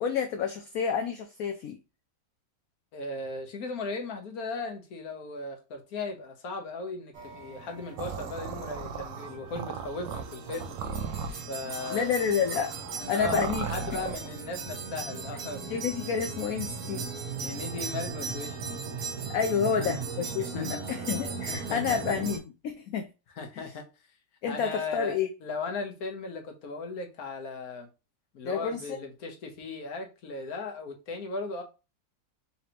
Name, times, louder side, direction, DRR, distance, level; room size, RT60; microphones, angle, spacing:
voice 1, 0.0-1.8 11.9-12.7 13.1-13.6 15.7-17.0 19.3-23.1 23.6-23.7 24.4-25.3 28.4-29.0, left 6 dB, 75° left, 0.8 m, -29 dB
voice 2, 2.9-10.8 11.5-12.1 13.0-15.8 17.4-18.8 19.8-20.0 20.5-20.8 21.5-22.2 23.3-23.8 24.5-27.9 28.3-31.6, left 3 dB, 60° left, 1.3 m, -37 dB
sound 1, 7.1-22.4, right 5 dB, 55° right, 1.4 m, -38 dB
sound 2, 8.0-14.3, right 6 dB, 75° right, 1.3 m, -37 dB
4.2 x 3.2 x 2.8 m
omnidirectional pair, 2.0 m